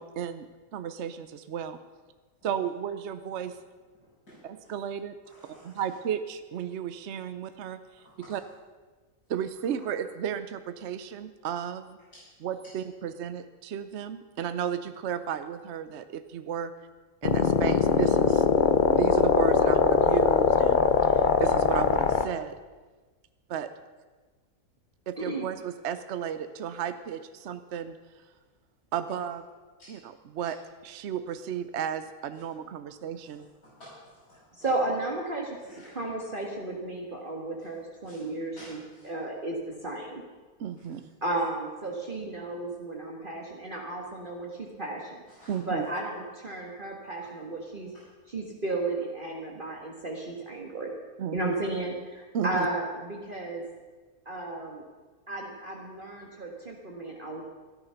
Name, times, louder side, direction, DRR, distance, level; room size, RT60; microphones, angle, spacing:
voice 1, 0.0-1.8 2.4-3.6 4.7-5.2 5.6-8.0 8.3-8.4 9.3-12.0 12.4-16.7 17.2-18.4 18.9-22.6 23.5-23.7 25.1-28.0 28.9-29.4 29.9-30.0 30.3-30.6 30.8-33.5 40.6-41.0 45.5-45.9 51.2-51.5 52.3-52.7, right 9 dB, 60° right, 10 dB, 0.9 m, -33 dB
voice 2, 5.3-6.0 8.0-8.3 12.1-12.3 29.8-29.9 32.3-32.4 33.2-34.7 35.6-35.9 38.0-38.2 38.6-39.1 40.8-40.9 45.3-45.6 47.2-47.3 47.9-48.0, left 1 dB, 85° left, -11 dB, 6.4 m, -53 dB
sound 1, 17.2-22.2, left 6 dB, 45° left, 0.7 m, -22 dB
voice 3, 25.2-25.5 34.6-35.6 35.9-38.8 39.0-40.2 41.2-45.2 45.6-47.9 48.3-50.9 51.3-53.6 54.2-54.8 55.3-57.4, right 2 dB, 35° right, -1 dB, 1.7 m, -33 dB
14.0 x 13.0 x 5.7 m, 1.3 s
omnidirectional pair, 1.6 m